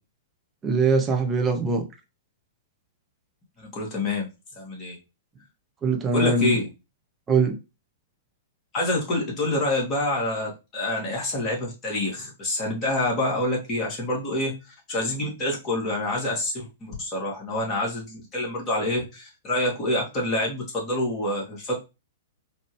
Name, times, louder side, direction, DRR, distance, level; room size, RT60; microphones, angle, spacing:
voice 1, 0.6-1.9 5.8-6.6 7.3-7.6, right 4 dB, 20° right, 0.7 m, -22 dB
voice 2, 3.6-4.3 4.6-5.0 6.1-6.7 8.7-14.5 14.9-21.8, left 1 dB, 30° left, 2.0 m, -27 dB
4.2 x 2.6 x 3.0 m
figure-of-eight pair, 110°, 0 cm